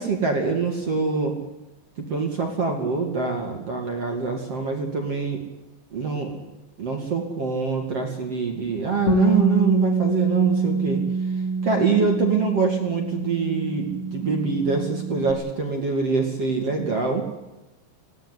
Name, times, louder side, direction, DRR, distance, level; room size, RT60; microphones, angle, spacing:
voice 1, 0.0-1.4 2.0-5.4 5.9-6.4 6.8-11.0 11.6-17.2, right 4 dB, 40° right, 3 dB, 3.0 m, -25 dB
Bass guitar, 9.1-15.3, right 3 dB, 35° left, 3.7 m, -25 dB
19.5 x 17.0 x 9.8 m, 1.0 s
omnidirectional pair, 5.5 m